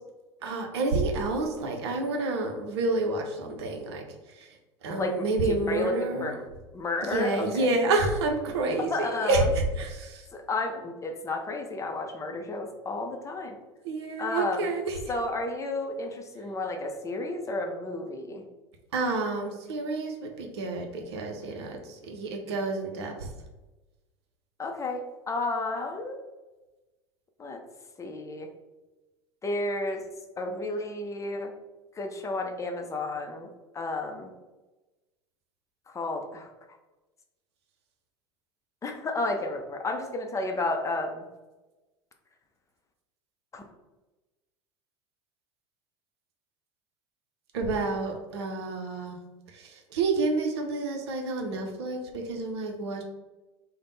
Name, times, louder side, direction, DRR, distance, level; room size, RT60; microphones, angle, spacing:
voice 1, 0.4-6.4 7.1-10.3 13.8-15.1 18.9-23.3 47.5-49.2 49.5-53.0, right 3 dB, 70° right, 3 dB, 0.6 m, -29 dB
voice 2, 5.0-6.4 6.7-7.7 8.9-9.4 10.3-13.6 14.2-14.7 15.1-18.4 24.6-26.2 27.4-27.6 28.0-28.5 29.4-30.0 30.4-31.5 32.0-33.5 33.7-34.3 35.9-36.5 38.8-41.3 43.5-43.6, left 2 dB, 20° left, 3 dB, 0.5 m, -32 dB
3.3 x 2.1 x 3.9 m, 1.1 s
figure-of-eight pair, 75°, 14 cm